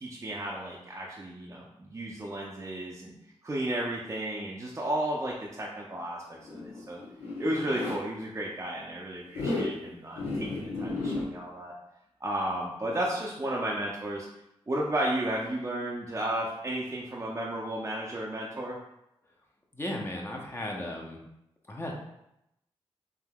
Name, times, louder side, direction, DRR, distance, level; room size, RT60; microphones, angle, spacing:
voice 1, 0.0-3.1 3.4-7.0 7.4-11.7 12.2-14.3 14.7-18.8, right 1 dB, 30° right, -4 dB, 0.5 m, -33 dB
Zipper (clothing), 6.4-8.0 9.3-9.7 10.2-11.2, left 2 dB, 90° left, 0.8 m, -33 dB
voice 2, 19.7-21.2 21.7-21.9, left 1 dB, 20° left, -1 dB, 0.7 m, -35 dB
3.4 x 2.6 x 2.3 m, 0.84 s
cardioid pair, 45°, 11 cm